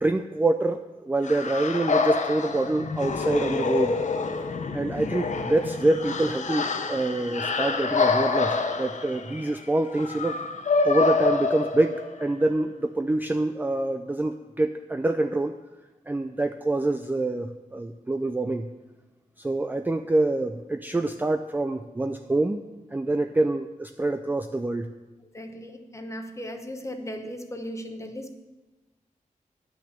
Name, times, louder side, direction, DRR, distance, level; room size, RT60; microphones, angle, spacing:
voice 1, 0.0-4.0 4.7-10.4 10.8-15.6 16.1-18.7 19.4-22.6 22.9-24.9, right 2 dB, 15° right, 7 dB, 0.4 m, -26 dB
sound 1, 1.2-12.3, left 4 dB, 60° left, 0.8 m, -27 dB
voice 2, 25.3-28.4, equal, 20° left, 5 dB, 1.0 m, -37 dB
10.0 x 6.1 x 7.3 m, 1.1 s
wide cardioid pair, 110°, 14 cm